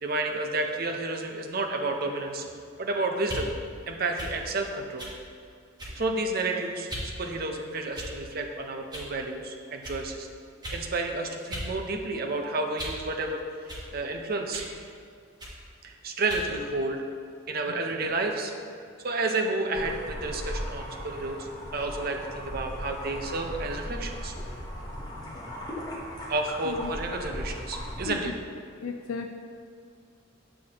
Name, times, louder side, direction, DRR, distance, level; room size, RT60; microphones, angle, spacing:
voice 1, 0.0-2.5 2.8-3.5 3.9-5.1 5.9-10.3 10.7-14.6 15.8-17.0 17.5-18.5 19.0-24.3 26.3-28.3, right 2 dB, 45° right, 3 dB, 0.6 m, -31 dB
sound 1, 3.2-3.5 4.2-4.4 5.0-5.2 5.8-6.1 6.9-7.1 7.9-8.3 8.9-9.1 9.8-10.0 10.6-10.8 11.5-11.7 12.1-13.0 13.7-13.9 14.5-14.7 15.4-15.6 16.3-16.5, equal, 20° right, 1.2 m, -37 dB
sound 2, 19.7-28.1, equal, 20° left, 0.9 m, -37 dB
voice 2, 28.8-29.3, left 5 dB, 90° left, 5 dB, 0.3 m, -35 dB
7.7 x 6.5 x 2.8 m, 2.3 s
head